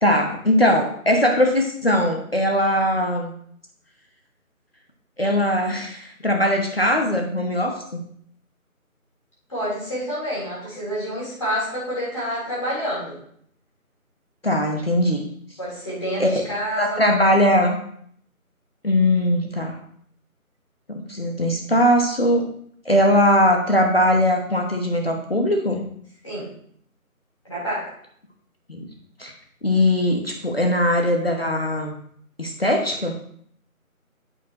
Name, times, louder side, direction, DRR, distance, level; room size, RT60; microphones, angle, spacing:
voice 1, 0.0-3.3 5.2-8.0 14.4-15.2 16.2-16.3 16.8-17.8 18.8-19.7 20.9-22.5 22.8-25.8 28.7-28.8 29.2-29.3 29.6-31.9 32.4-33.2, left 1 dB, 45° left, 2 dB, 1.1 m, -20 dB
voice 2, 9.5-13.2 15.6-17.0 17.6-17.7 26.2-26.5 27.4-27.9, equal, 20° left, -8 dB, 3.4 m, -28 dB
8.6 x 8.3 x 2.9 m, 0.63 s
figure-of-eight pair, 170°, 43 cm